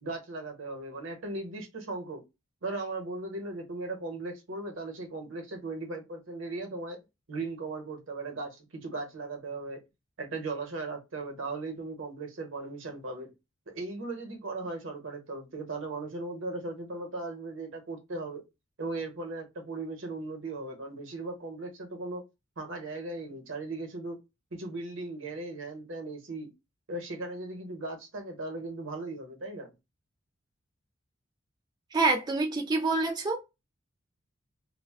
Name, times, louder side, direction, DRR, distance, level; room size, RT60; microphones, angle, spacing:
voice 1, 0.0-2.2 2.6-7.0 7.3-9.8 10.2-13.3 13.7-18.4 18.8-22.2 22.6-24.2 24.5-26.5 26.9-29.7, right 2 dB, 70° right, 0.9 m, -37 dB
voice 2, 31.9-33.4, right 3 dB, 20° right, 0.3 m, -26 dB
2.4 x 2.2 x 3.4 m
head